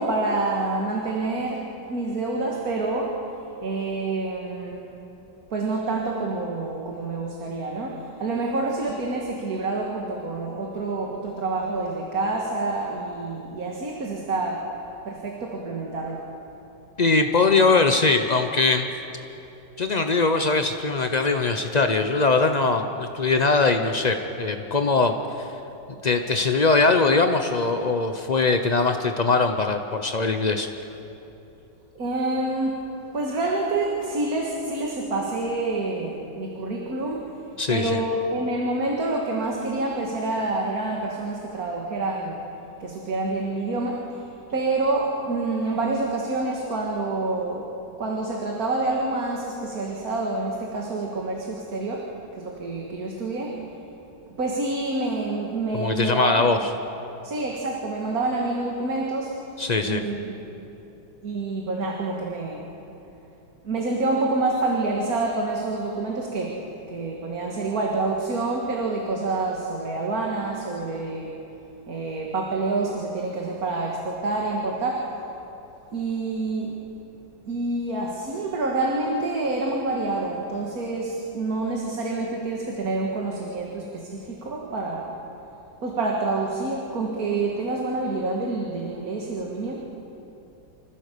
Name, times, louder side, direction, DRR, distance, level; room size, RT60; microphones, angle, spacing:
voice 1, 0.0-1.6 1.9-3.2 3.6-4.8 5.5-14.7 15.1-16.2 32.0-37.3 37.7-42.4 42.8-44.2 44.5-47.7 48.0-53.6 54.4-56.5 57.2-59.4 59.8-60.5 61.2-62.6 63.6-71.4 71.9-75.1 75.9-76.8 77.5-85.1 85.8-89.8, right 2 dB, 50° right, -1 dB, 2.1 m, -27 dB
voice 2, 17.0-18.9 19.8-25.5 26.0-30.7 37.6-38.0 55.7-56.6 59.6-60.0, left 3 dB, 85° left, 6 dB, 0.3 m, -21 dB
26.0 x 15.0 x 6.8 m, 2.9 s
omnidirectional pair, 2.0 m